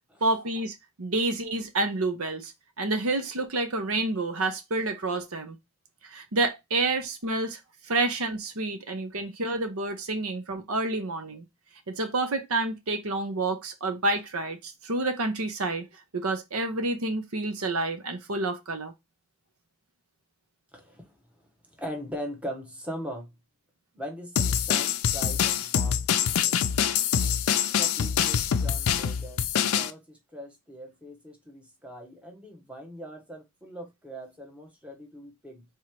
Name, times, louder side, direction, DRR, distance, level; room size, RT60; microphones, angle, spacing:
voice 1, 0.2-2.5 2.8-5.6 6.0-7.6 7.9-11.5 11.9-15.9 16.1-18.9, right 2 dB, 90° right, 0.9 m, -29 dB
voice 2, 20.7-21.2 21.8-23.3 23.9-26.7 27.7-35.6, equal, 5° right, 0.9 m, -41 dB
sound 1, 24.4-29.9, left 8 dB, 90° left, 0.5 m, -25 dB
3.6 x 3.0 x 4.5 m
head